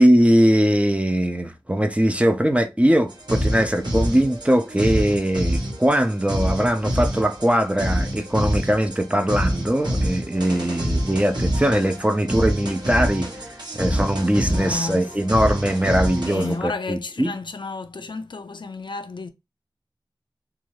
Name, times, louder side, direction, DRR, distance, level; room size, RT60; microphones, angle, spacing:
voice 1, 0.0-13.3 13.7-17.3, equal, 15° right, 0.5 m, -20 dB
sound 1, 3.1-16.6, equal, 60° right, 1.0 m, -26 dB
voice 2, 14.5-15.1 16.3-19.3, left 3 dB, 65° left, 0.4 m, -31 dB
2.6 x 2.3 x 3.1 m
wide cardioid pair, 50°, 9 cm